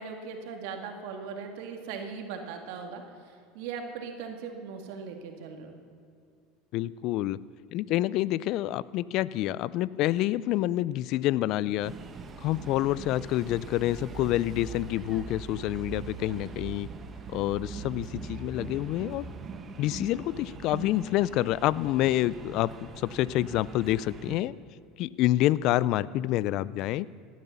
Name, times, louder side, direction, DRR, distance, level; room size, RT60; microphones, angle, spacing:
voice 1, 0.0-5.7, right 5 dB, 70° right, 4 dB, 2.1 m, -39 dB
voice 2, 6.7-7.4 7.7-11.9 12.4-16.9 17.3-19.3 19.8-24.5 25.0-27.1, left 15 dB, 60° left, 20 dB, 0.4 m, -27 dB
sound 1, 11.8-24.4, right 5 dB, 30° right, 1.4 m, -42 dB
16.5 x 11.0 x 7.0 m, 2.3 s
supercardioid pair, 95°, 0 cm